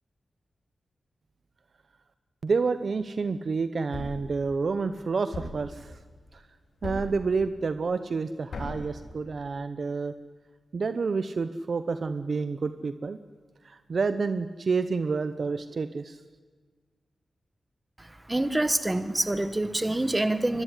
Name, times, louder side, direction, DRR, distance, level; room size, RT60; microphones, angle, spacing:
voice 1, 2.4-6.0 6.3-6.4 6.8-10.1 10.7-13.2 13.6-16.2, right 4 dB, 50° right, 11 dB, 0.9 m, -29 dB
Thump thud, 3.9-4.3 5.3-5.7 6.8-7.2 8.5-8.9, left 2 dB, 70° left, 7.4 m, -36 dB
voice 2, 18.3-20.6, right 1 dB, 15° right, 12 dB, 1.5 m, -26 dB
24.0 x 22.5 x 9.9 m, 1.4 s
wide cardioid pair, 130°, 0 cm